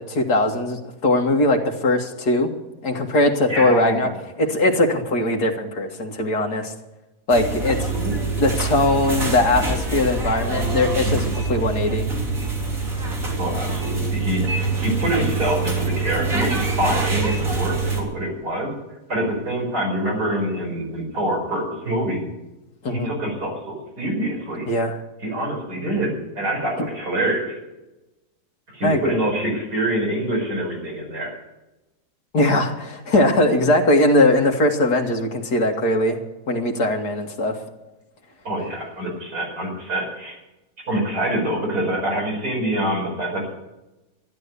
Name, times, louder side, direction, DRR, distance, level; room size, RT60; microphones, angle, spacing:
voice 1, 0.0-2.5 2.8-4.1 4.4-6.7 7.3-7.9 8.4-12.1 22.8-23.1 24.7-25.0 26.8-26.9 28.8-29.2 32.3-36.2 36.5-37.6, left 1 dB, 85° left, 3 dB, 2.3 m, -20 dB
voice 2, 3.5-4.2 7.6-8.4 13.4-18.7 19.1-22.2 22.9-24.6 25.2-27.6 28.7-31.4 38.4-40.4 40.9-43.5, right 1 dB, 80° right, -1 dB, 5.6 m, -25 dB
sound 1, 7.3-18.0, right 3 dB, 55° right, 3.6 m, -25 dB
13.5 x 11.0 x 8.2 m, 1.0 s
omnidirectional pair, 1.7 m